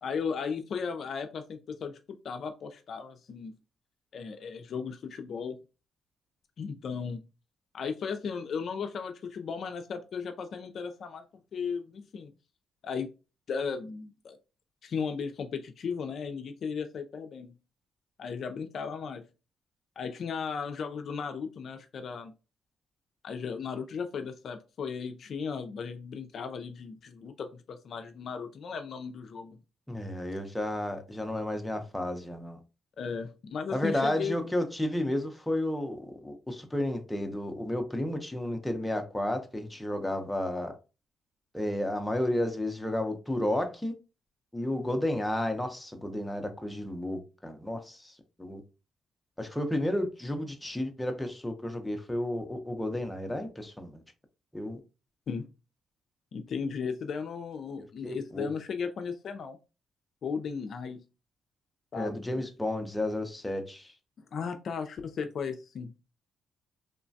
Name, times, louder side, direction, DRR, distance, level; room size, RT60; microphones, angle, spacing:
voice 1, 0.0-2.0 2.2-3.5 4.1-5.6 6.6-7.2 7.7-11.2 11.5-12.3 12.8-13.1 13.5-14.4 14.8-17.5 18.2-19.2 20.0-22.3 23.2-29.6 33.0-34.4 55.3-55.5 56.3-59.6 60.2-61.0 61.9-62.4 64.3-65.9, left 6 dB, 60° left, 0.3 m, -36 dB
voice 2, 29.9-32.6 33.7-40.7 41.5-43.9 44.5-48.6 49.4-54.0 54.5-54.8 58.0-58.5 62.0-63.9, left 1 dB, 5° left, 0.6 m, -32 dB
3.1 x 2.1 x 2.6 m
cardioid pair, 90°, 0 cm